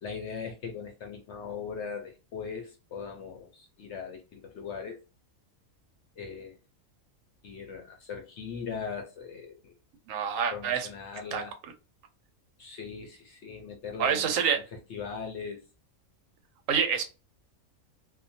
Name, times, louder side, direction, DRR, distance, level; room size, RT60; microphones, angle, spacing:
voice 1, 0.0-5.0 6.2-6.6 7.4-9.7 10.5-11.5 12.6-14.4 14.9-15.6, left 6 dB, 65° left, 0.8 m, -39 dB
voice 2, 10.1-10.9 11.3-11.4 14.0-14.6 16.7-17.0, right 7 dB, 75° right, 0.9 m, -27 dB
2.4 x 2.2 x 2.6 m
omnidirectional pair, 1.5 m